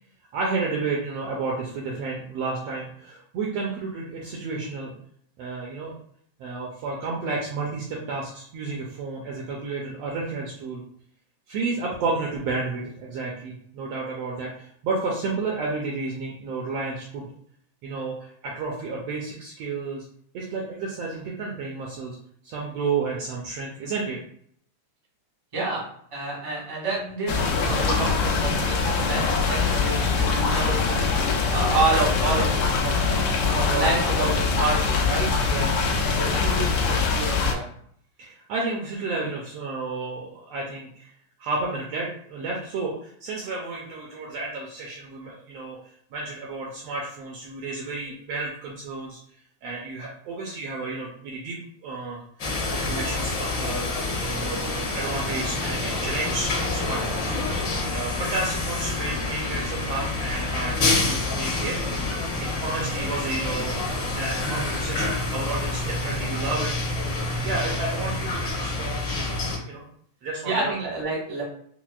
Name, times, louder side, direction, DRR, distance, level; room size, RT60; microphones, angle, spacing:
voice 1, 0.3-4.9 5.4-6.0 6.4-10.8 11.5-17.3 17.8-20.1 20.3-22.2 22.4-24.2 33.6-34.1 35.5-35.7 38.2-41.1 41.4-45.8 46.1-49.2 49.6-52.3 52.7-53.9 54.4-54.6 54.9-57.5 57.9-61.8 62.4-66.7 67.4-69.8 70.2-70.7, right 3 dB, 80° right, -2 dB, 1.5 m, -31 dB
voice 2, 25.5-25.8 26.1-31.1 31.5-35.3 36.2-37.6 70.4-71.4, right 3 dB, 35° right, -6 dB, 0.5 m, -28 dB
sound 1, 27.3-37.5, left 4 dB, 85° left, 2.0 m, -23 dB
sound 2, 52.4-69.6, left 2 dB, 60° left, 1.1 m, -28 dB
sound 3, 54.5-66.8, left 1 dB, 40° left, 0.7 m, -40 dB
5.9 x 2.0 x 2.4 m, 0.63 s
omnidirectional pair, 3.3 m